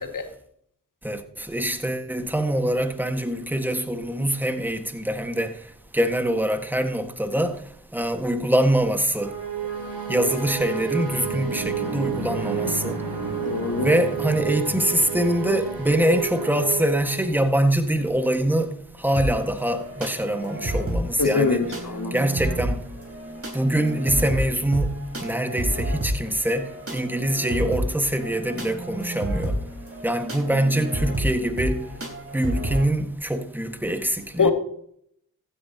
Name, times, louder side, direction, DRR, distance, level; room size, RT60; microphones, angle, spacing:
voice 1, 1.0-5.5 5.9-7.6 7.9-9.3 10.1-13.0 13.8-18.7 19.0-21.6 22.1-22.8 23.5-24.9 25.2-29.5 30.0-31.8 32.3-34.5, right 1 dB, 5° right, 1.6 m, -24 dB
sound 1, 9.1-17.6, right 6 dB, 65° right, 3.6 m, -29 dB
voice 2, 13.4-13.9 21.2-22.2 34.4-34.5, left 4 dB, 55° left, 2.1 m, -23 dB
sound 2, 19.2-32.9, right 1 dB, 35° right, 4.1 m, -30 dB
15.0 x 10.0 x 2.9 m
supercardioid pair, 45°, 39 cm